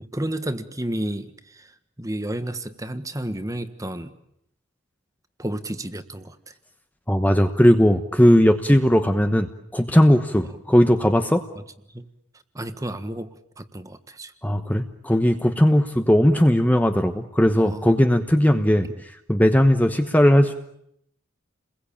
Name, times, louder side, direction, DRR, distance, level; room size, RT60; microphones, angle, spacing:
voice 1, 0.0-1.7 2.0-4.1 5.4-6.5 8.7-8.8 10.4-10.6 11.5-11.6 11.9-12.0 12.5-13.3 13.6-14.3 17.5-17.8 18.9-19.0, right 1 dB, 15° right, 10 dB, 1.4 m, -31 dB
voice 2, 7.1-9.5 9.7-11.4 14.4-18.9 19.3-20.5, equal, 5° left, 6 dB, 1.1 m, -18 dB
29.5 x 21.5 x 8.7 m, 0.75 s
head